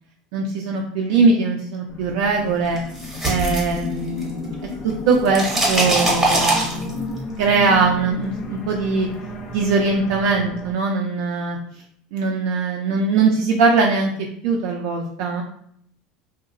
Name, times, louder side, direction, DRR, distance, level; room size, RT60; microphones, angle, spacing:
voice 1, 0.3-2.8 3.2-4.6 4.8-9.1 9.5-11.6 12.1-14.1 14.4-15.4, right 4 dB, 70° right, 0 dB, 0.3 m, -21 dB
sound 1, 1.9-10.7, left 2 dB, 30° left, 0.4 m, -33 dB
sound 2, 2.8-4.5 4.7-7.2, right 2 dB, 10° right, 0.7 m, -22 dB
2.8 x 2.1 x 2.5 m, 0.67 s
cardioid pair, 155°, 3 cm